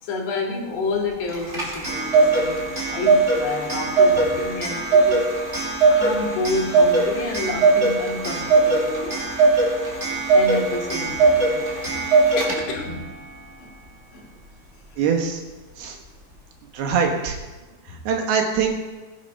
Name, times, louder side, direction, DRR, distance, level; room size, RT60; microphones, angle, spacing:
voice 1, 0.0-5.4 5.9-9.2 10.3-11.8 12.4-13.0 13.6-13.7 14.1-14.3 14.9-15.0, left 3 dB, 90° left, -1 dB, 4.3 m, -29 dB
Clock, 1.3-12.9, right 3 dB, 20° right, 2.1 m, -20 dB
voice 2, 15.0-15.4 15.8-15.9 16.7-17.4 18.1-18.7, right 6 dB, 70° right, 2 dB, 3.3 m, -22 dB
17.0 x 9.1 x 5.5 m, 1.2 s
omnidirectional pair, 4.7 m